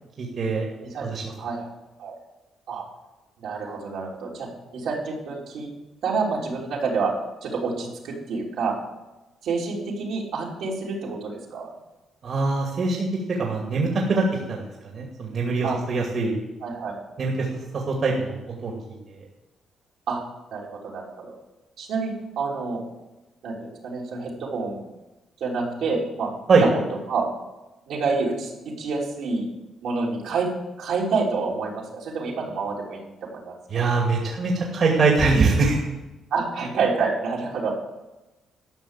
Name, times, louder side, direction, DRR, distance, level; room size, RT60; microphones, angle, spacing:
voice 1, 0.2-0.7 1.0-1.3 12.2-14.6 14.9-16.4 17.2-17.6 17.9-18.7 26.5-26.6 33.7-35.8, right 3 dB, 55° right, 0 dB, 2.4 m, -23 dB
voice 2, 1.4-1.7 2.0-2.1 2.7-2.8 3.4-5.7 6.0-7.1 7.4-8.8 9.4-11.7 15.6-15.8 16.6-16.9 20.1-20.2 20.5-21.4 21.8-22.8 23.4-24.8 25.4-26.3 26.6-26.8 27.1-27.3 27.9-29.5 29.8-30.5 30.8-33.8 36.3-37.7, right 4 dB, 80° right, -3 dB, 3.2 m, -28 dB
12.5 x 5.9 x 7.5 m, 1.0 s
cardioid pair, 85°, 0 cm